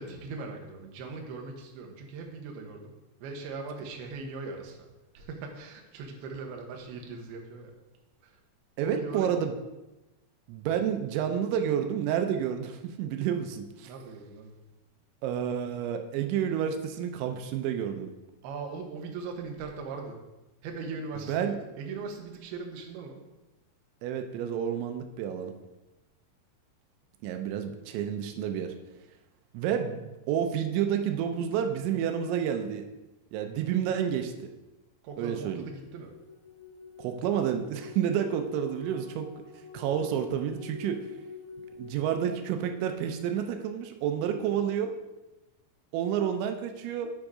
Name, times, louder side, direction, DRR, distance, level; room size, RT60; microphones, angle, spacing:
voice 1, 0.0-2.9 3.2-4.9 5.1-7.7 8.2-8.4 8.8-9.5 13.8-14.6 18.4-20.2 20.6-23.2 35.0-36.1, right 4 dB, 70° right, 2 dB, 2.8 m, -40 dB
voice 2, 8.8-9.5 10.5-13.9 15.2-18.1 21.3-21.6 24.0-25.5 27.2-28.7 29.5-32.9 33.3-34.5 35.2-35.7 37.0-39.3 39.5-41.0 41.8-44.9 45.9-47.1, right 9 dB, 90° right, 6 dB, 3.1 m, -30 dB
sound 1, 35.7-43.5, left 3 dB, 75° left, 3.2 m, -46 dB
8.2 x 6.2 x 4.9 m, 1.0 s
omnidirectional pair, 5.2 m